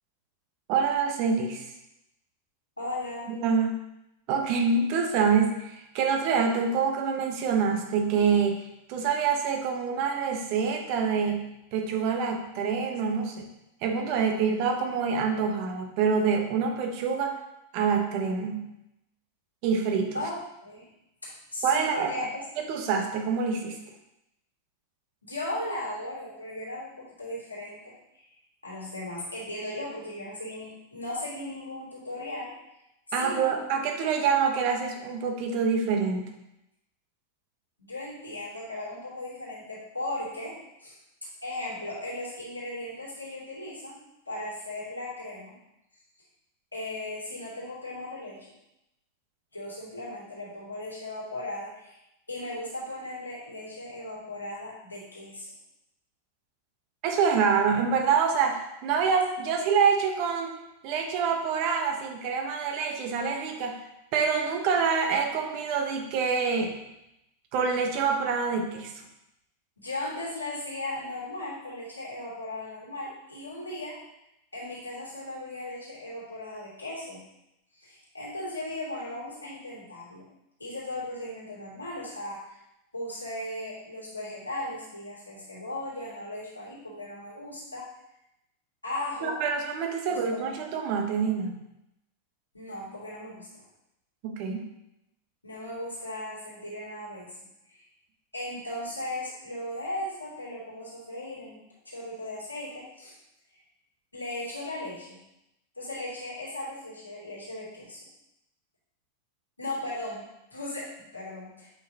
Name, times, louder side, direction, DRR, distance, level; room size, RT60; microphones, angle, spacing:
voice 1, 0.7-1.6 3.3-3.8 4.3-13.5 13.8-17.4 17.7-18.7 19.6-20.1 21.6-22.3 22.6-23.8 33.1-36.3 57.0-60.6 60.8-63.8 64.1-66.7 67.5-68.9 89.2-91.6 94.2-94.7, right 5 dB, 45° right, 4 dB, 1.1 m, -26 dB
voice 2, 2.8-3.3 20.1-20.3 20.6-20.9 21.2-22.4 25.2-28.2 28.6-32.5 33.1-33.6 37.8-41.0 41.4-44.0 44.3-45.5 46.7-48.4 49.5-52.0 52.3-55.5 59.0-59.1 69.8-74.0 74.5-77.2 77.8-80.2 80.6-82.4 82.9-87.9 88.8-89.4 90.0-90.6 92.5-93.6 95.4-97.3 97.7-97.8 98.3-103.1 104.1-105.2 105.8-108.0 109.6-110.2 110.5-111.7, left 1 dB, 85° left, -7 dB, 2.6 m, -37 dB
8.1 x 5.8 x 2.9 m, 0.87 s
figure-of-eight pair, 90°, 0 cm